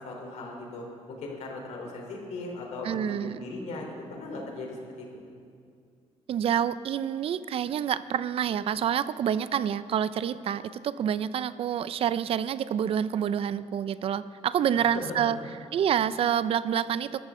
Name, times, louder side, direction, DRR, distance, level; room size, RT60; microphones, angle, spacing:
voice 1, 0.0-5.1 14.7-15.3, left 2 dB, 75° left, 0 dB, 3.6 m, -38 dB
voice 2, 2.8-3.5 6.3-15.4 15.7-17.2, right 9 dB, 55° right, 15 dB, 0.4 m, -27 dB
21.5 x 13.0 x 3.7 m, 2.3 s
cardioid pair, 135°, 12 cm